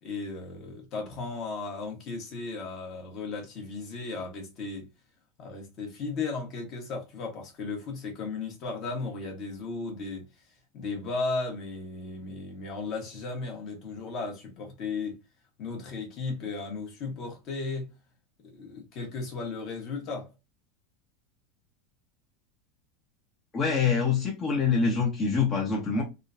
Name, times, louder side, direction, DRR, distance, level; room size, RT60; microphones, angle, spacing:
voice 1, 0.0-4.9 5.4-10.3 10.7-15.2 15.6-17.9 18.5-20.3, left 3 dB, 45° left, 1.3 m, -35 dB
voice 2, 23.5-26.0, left 5 dB, 25° left, 0.8 m, -25 dB
3.6 x 2.3 x 2.6 m
supercardioid pair, 140°, 0 cm